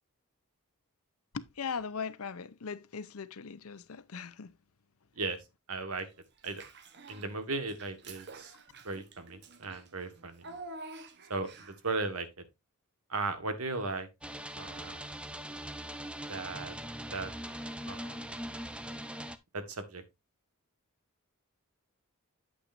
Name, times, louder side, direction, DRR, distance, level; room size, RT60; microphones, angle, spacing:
voice 1, 1.3-4.5, left 5 dB, 80° left, 0.7 m, -39 dB
voice 2, 5.1-6.1 6.4-6.6 7.1-10.4 11.3-12.3 13.1-14.1 14.6-15.1 16.3-16.8 17.1-17.3 17.9-18.2 19.5-20.0, right 3 dB, 85° right, 1.5 m, -37 dB
Child speech kid speaking / Bathtub (filling or washing), 6.4-7.3 7.7-11.9, right 3 dB, 50° right, 1.0 m, -49 dB
sound 1, 14.2-19.4, right 1 dB, 5° right, 0.5 m, -41 dB
8.8 x 8.5 x 2.6 m
head